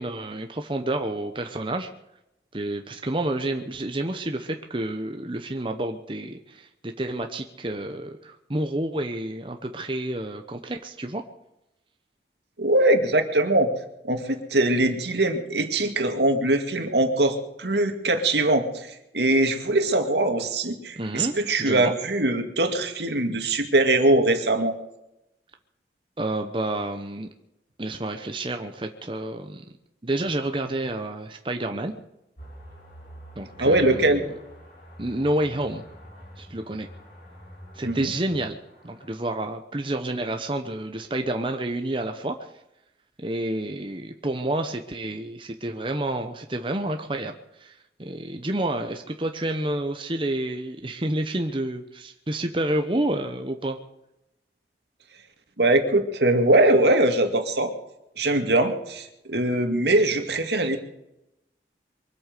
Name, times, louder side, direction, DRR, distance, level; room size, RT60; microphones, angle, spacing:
voice 1, 0.0-1.9 2.5-6.7 7.0-11.2 21.0-21.9 26.2-27.3 27.8-29.6 30.0-31.9 33.4-34.3 35.0-35.8 36.4-36.9 37.7-38.6 38.8-42.4 43.2-47.7 48.0-53.8, right 1 dB, 30° right, 5 dB, 1.0 m, -29 dB
voice 2, 12.6-13.7 14.0-18.9 19.1-24.8 33.6-34.2 37.8-38.1 55.6-57.7 58.2-60.8, right 2 dB, 75° right, 5 dB, 2.2 m, -22 dB
sound 1, 32.4-39.1, equal, 55° left, 6.7 m, -46 dB
23.5 x 8.7 x 6.7 m, 0.87 s
head